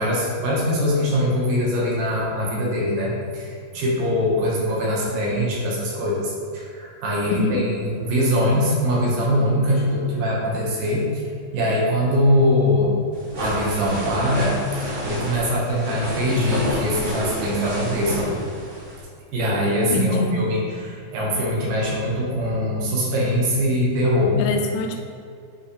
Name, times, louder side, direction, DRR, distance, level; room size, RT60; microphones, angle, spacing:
voice 1, 0.0-11.2 11.5-13.0 13.4-18.3 19.3-24.4, equal, 75° right, -4 dB, 3.1 m, -22 dB
voice 2, 7.3-7.6 19.9-20.4 24.4-25.0, left 2 dB, 90° left, 3 dB, 2.5 m, -24 dB
sound 1, 13.1-19.0, equal, 50° right, 2.7 m, -30 dB
8.4 x 5.5 x 3.3 m, 2.4 s
omnidirectional pair, 4.0 m